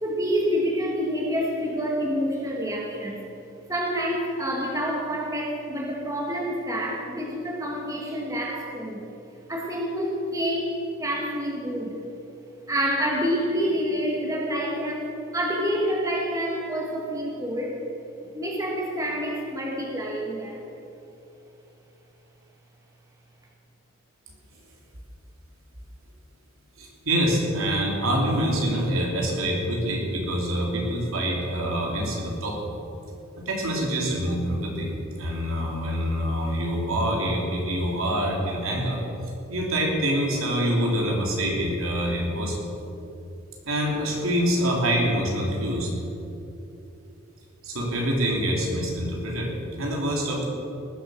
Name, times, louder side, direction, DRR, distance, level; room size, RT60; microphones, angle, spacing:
voice 1, 0.0-3.2 3.7-9.1 9.5-12.0 12.7-17.8 18.3-20.6, equal, 15° right, -1 dB, 1.7 m, -27 dB
voice 2, 26.8-32.7 33.4-39.0 39.5-42.6 43.6-45.9 47.6-50.5, equal, 80° right, -1 dB, 3.1 m, -26 dB
19.5 x 7.7 x 6.4 m, 2.8 s
head